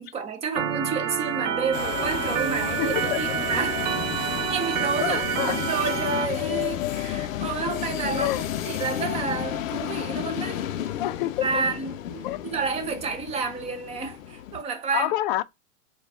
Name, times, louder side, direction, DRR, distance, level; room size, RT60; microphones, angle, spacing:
voice 1, 0.0-3.8 4.2-10.7 11.4-15.1, right 5 dB, 15° right, 0.6 m, -30 dB
Organ, 0.6-6.3, right 8 dB, 65° right, 1.2 m, -28 dB
sound 1, 1.7-14.6, left 11 dB, 85° left, 0.7 m, -32 dB
voice 2, 2.6-3.2 5.0-5.6 8.1-8.5 10.9-11.6 12.2-12.5 14.9-15.4, left 15 dB, 45° left, 0.4 m, -28 dB
4.5 x 2.4 x 3.4 m
supercardioid pair, 145°, 39 cm